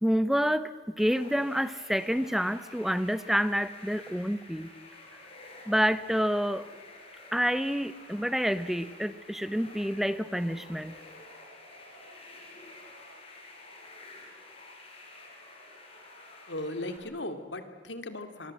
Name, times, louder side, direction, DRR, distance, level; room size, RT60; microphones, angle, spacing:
voice 1, 0.0-0.7 1.0-4.7 5.7-6.7 7.3-10.9, equal, ahead, 14 dB, 0.8 m, -28 dB
sound 1, 1.0-17.0, left 2 dB, 30° left, 5.3 m, -50 dB
voice 2, 16.5-18.5, left 1 dB, 75° left, 8 dB, 2.5 m, -37 dB
25.5 x 23.5 x 7.6 m, 1.5 s
head